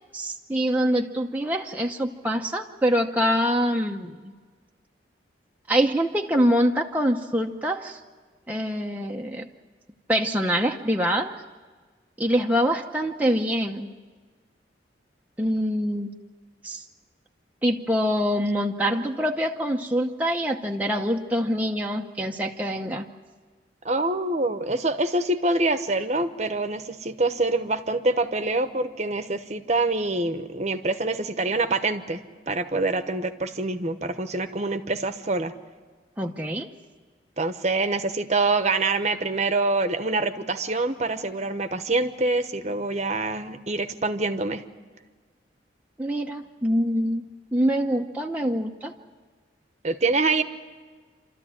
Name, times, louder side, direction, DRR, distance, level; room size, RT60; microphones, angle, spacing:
voice 1, 0.1-4.3 5.7-8.0 8.5-9.5 10.1-11.3 12.2-13.9 15.4-16.1 16.6-16.8 17.6-23.1 36.2-36.7 46.0-48.9, equal, 10° right, 1 dB, 0.8 m, -25 dB
voice 2, 23.8-32.2 32.5-35.5 37.4-44.6 49.8-50.4, right 2 dB, 40° right, 9 dB, 1.0 m, -25 dB
28.0 x 13.5 x 10.0 m, 1.5 s
head